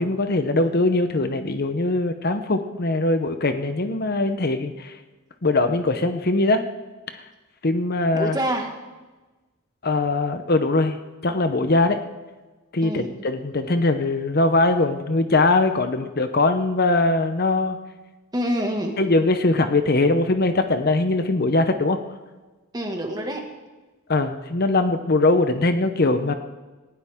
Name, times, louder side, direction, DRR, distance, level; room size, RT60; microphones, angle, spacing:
voice 1, 0.0-4.9 5.4-6.7 7.1-7.2 7.6-8.4 9.8-11.0 11.2-12.0 12.7-17.8 19.0-22.0 24.1-26.3, left 2 dB, 45° left, 8 dB, 0.8 m, -21 dB
voice 2, 8.1-8.7 12.8-13.1 18.3-19.0 22.7-23.4, equal, 20° right, 2 dB, 1.8 m, -26 dB
19.5 x 16.0 x 3.7 m, 1.2 s
head